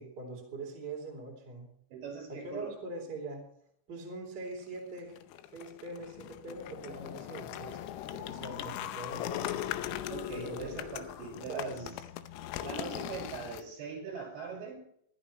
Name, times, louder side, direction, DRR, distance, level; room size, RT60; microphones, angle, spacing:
voice 1, 0.0-1.7 2.3-3.4 3.9-5.2 5.5-7.8 8.1-9.6 10.3-10.7 11.5-11.9, right 2 dB, 25° right, -2 dB, 3.5 m, -42 dB
voice 2, 1.9-2.8 10.1-11.9 12.6-14.8, right 6 dB, 55° right, 2 dB, 7.8 m, -41 dB
sound 1, 5.0-13.6, left 12 dB, 85° left, 3.5 m, -39 dB
24.0 x 12.0 x 3.2 m, 0.68 s
omnidirectional pair, 6.0 m